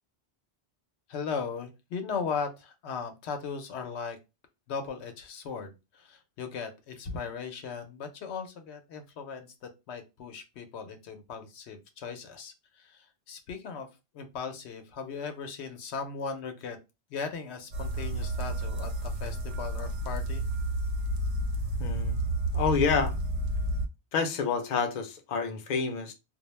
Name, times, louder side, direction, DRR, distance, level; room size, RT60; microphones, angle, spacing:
voice 1, 1.1-4.2 4.7-13.9 14.1-16.8 17.1-20.4, left 5 dB, 90° left, 0.9 m, -38 dB
sound 1, 17.7-23.9, right 1 dB, 90° right, 0.9 m, -31 dB
voice 2, 21.8-22.2 22.5-23.1 24.1-26.1, left 5 dB, 55° left, 0.6 m, -28 dB
2.3 x 2.0 x 3.0 m
omnidirectional pair, 1.1 m